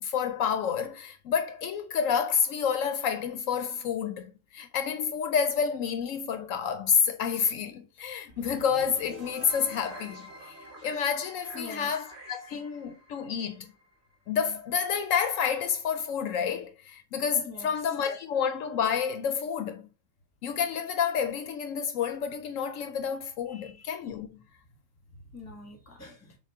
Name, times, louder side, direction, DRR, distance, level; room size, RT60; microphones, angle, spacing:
voice 1, 0.0-10.3 10.8-13.7 14.3-19.8 20.4-24.4, left 7 dB, 75° left, 0.9 m, -29 dB
sound 1, 8.3-14.4, right 1 dB, 55° right, 1.3 m, -47 dB
voice 2, 11.5-11.9 17.4-17.7 23.5-23.9 25.3-26.4, left 3 dB, 15° left, 1.0 m, -45 dB
6.1 x 2.3 x 3.5 m
omnidirectional pair, 1.4 m